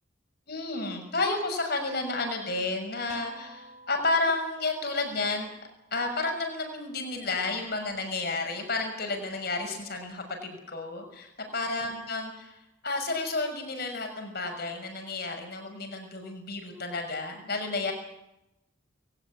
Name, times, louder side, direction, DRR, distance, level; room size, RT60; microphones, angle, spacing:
voice 1, 0.5-5.5 5.9-17.9, left 3 dB, 50° left, 4 dB, 6.3 m, -31 dB
sound 1, 3.1-6.0, right 2 dB, 35° right, 4.8 m, -51 dB
22.0 x 17.5 x 9.9 m, 0.88 s
head